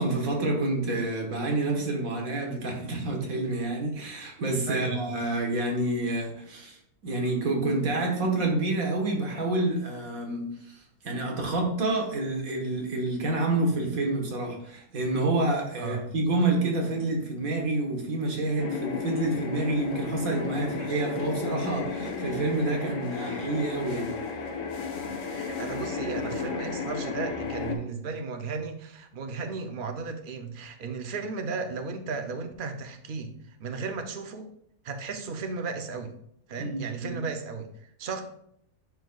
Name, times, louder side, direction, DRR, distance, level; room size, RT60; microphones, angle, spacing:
voice 1, 0.0-6.8 7.0-24.2 36.6-37.1, right 2 dB, 65° right, 1 dB, 1.8 m, -28 dB
voice 2, 4.7-5.0 15.8-16.1 25.3-34.5 34.8-36.1 36.5-38.2, right 4 dB, 50° right, 6 dB, 0.6 m, -35 dB
sound 1, 18.6-27.7, left 5 dB, 60° left, 1.2 m, -33 dB
10.5 x 4.5 x 2.3 m, 0.71 s
omnidirectional pair, 1.6 m